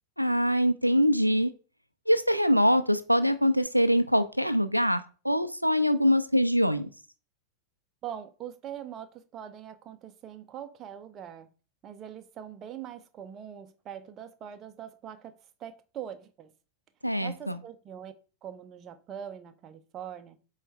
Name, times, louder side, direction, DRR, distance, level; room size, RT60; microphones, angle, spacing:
voice 1, 0.2-1.5 2.1-6.9 17.0-17.6, equal, 90° right, 0.4 m, -24 dB
voice 2, 8.0-11.5 11.8-15.3 15.6-16.5 17.2-18.1 18.4-20.4, right 9 dB, 30° right, 0.7 m, -42 dB
7.8 x 3.2 x 4.3 m
figure-of-eight pair, 90°, 0 cm